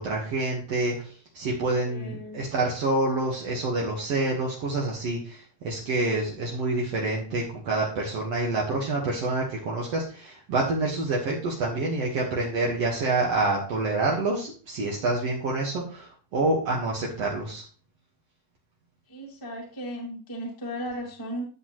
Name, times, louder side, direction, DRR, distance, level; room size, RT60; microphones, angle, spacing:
voice 1, 0.0-17.6, right 2 dB, 65° right, -3 dB, 1.5 m, -27 dB
voice 2, 1.7-2.4 19.1-21.4, equal, 10° left, -2 dB, 1.2 m, -36 dB
12.0 x 8.1 x 3.1 m, 0.40 s
omnidirectional pair, 5.1 m